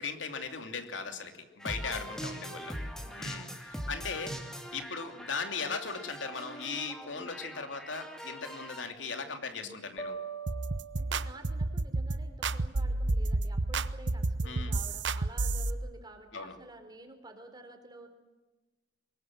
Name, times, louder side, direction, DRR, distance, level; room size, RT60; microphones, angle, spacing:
voice 1, 0.0-2.8 3.2-10.1 14.4-14.8 16.3-16.6, left 5 dB, 85° left, 6 dB, 3.0 m, -38 dB
sound 1, 1.6-8.8, equal, 5° left, 2.7 m, -42 dB
voice 2, 1.8-2.4 3.1-3.6 9.5-9.8 11.0-18.1, right 1 dB, 20° right, 6 dB, 3.9 m, -51 dB
sound 2, 10.0-11.9, right 5 dB, 30° left, 2.1 m, -42 dB
sound 3, 10.5-15.7, right 2 dB, 75° right, 0.9 m, -30 dB
24.5 x 22.0 x 7.7 m, 1.2 s
head